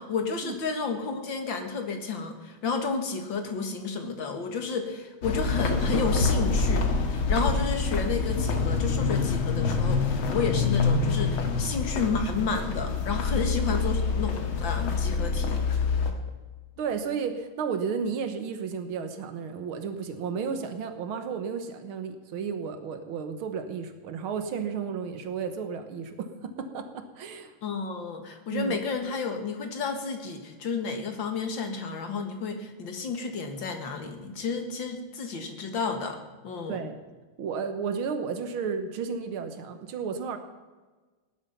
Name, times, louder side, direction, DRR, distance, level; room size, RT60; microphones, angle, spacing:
voice 1, 0.0-15.8 27.6-36.2 36.4-36.8, left 4 dB, 65° left, 5 dB, 2.4 m, -31 dB
sound 1, 5.2-16.1, left 4 dB, 85° left, 2.4 m, -26 dB
voice 2, 16.8-27.5 28.5-28.8 36.7-37.0 37.4-40.4, right 6 dB, 85° right, 8 dB, 2.0 m, -33 dB
17.0 x 12.0 x 5.8 m, 1.3 s
omnidirectional pair, 2.2 m